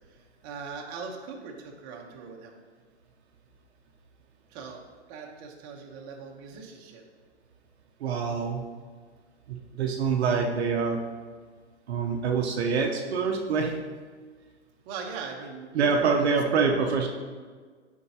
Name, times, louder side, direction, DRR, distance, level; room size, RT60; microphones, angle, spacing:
voice 1, 0.4-2.6 4.5-4.8 5.1-7.0 14.8-16.4, right 5 dB, 35° right, 0 dB, 1.0 m, -40 dB
voice 2, 8.0-8.6 9.5-11.0 11.9-13.8 15.7-17.1, right 5 dB, 65° right, 1 dB, 0.9 m, -25 dB
9.8 x 4.6 x 2.9 m, 1.5 s
hypercardioid pair, 135°, 35 cm